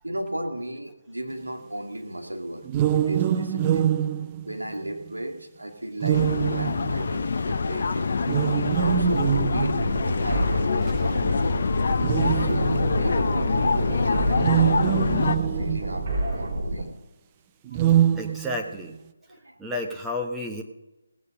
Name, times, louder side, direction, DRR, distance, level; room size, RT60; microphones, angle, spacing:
voice 1, 0.0-2.7 2.9-3.9 4.4-8.2 8.8-11.6 12.2-14.9 15.4-16.9 17.7-18.2 19.3-19.6, right 1 dB, 80° right, 3 dB, 2.4 m, -35 dB
sound 1, 2.6-5.1 6.0-7.2 8.2-10.1 10.9-11.0 12.0-13.0 14.3-16.1 17.6-18.9, right 10 dB, 20° right, 0.5 m, -24 dB
sound 2, 6.1-15.4, left 4 dB, 50° left, 0.7 m, -25 dB
sound 3, 8.7-16.8, right 1 dB, 40° right, 4.0 m, -29 dB
voice 2, 18.1-19.0 19.6-20.6, left 1 dB, 5° right, 0 dB, 1.2 m, -31 dB
18.0 x 8.3 x 5.2 m, 0.99 s
figure-of-eight pair, 150°, 0 cm